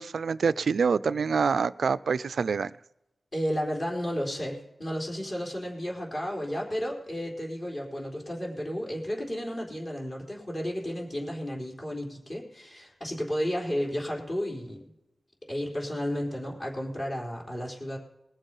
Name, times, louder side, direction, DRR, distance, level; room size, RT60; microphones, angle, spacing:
voice 1, 0.0-2.8, right 5 dB, 85° right, 16 dB, 0.3 m, -26 dB
voice 2, 3.3-14.8 15.5-18.0, equal, 45° left, -1 dB, 4.0 m, -32 dB
20.0 x 7.2 x 5.4 m, 0.89 s
wide cardioid pair, 95°, 0 cm